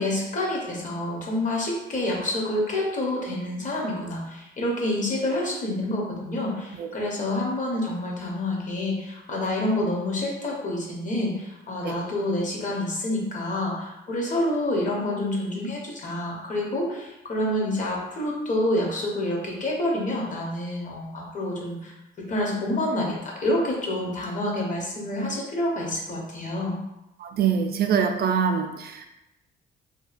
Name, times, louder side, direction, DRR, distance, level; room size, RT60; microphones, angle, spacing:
voice 1, 0.0-26.8, left 1 dB, 40° left, -2 dB, 0.8 m, -28 dB
voice 2, 27.2-29.0, right 7 dB, 55° right, 5 dB, 0.4 m, -24 dB
2.7 x 2.2 x 2.4 m, 0.94 s
cardioid pair, 90°, 20 cm